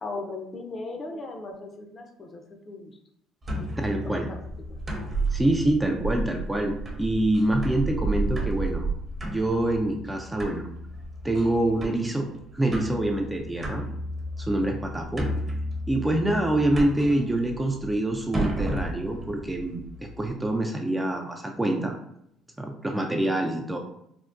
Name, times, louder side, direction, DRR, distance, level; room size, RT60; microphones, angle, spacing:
voice 1, 0.0-2.9 3.5-4.4 4.7-4.8, left 3 dB, 35° left, 4 dB, 0.6 m, -38 dB
sound 1, 3.4-20.3, right 1 dB, 25° right, 0.8 m, -33 dB
voice 2, 3.8-4.3 5.3-8.9 9.2-10.6 11.2-13.9 14.4-15.3 15.9-19.8 20.2-21.9 22.6-23.8, right 1 dB, 10° right, 2 dB, 0.4 m, -26 dB
3.5 x 2.1 x 2.5 m, 0.74 s
supercardioid pair, 90°, 0 cm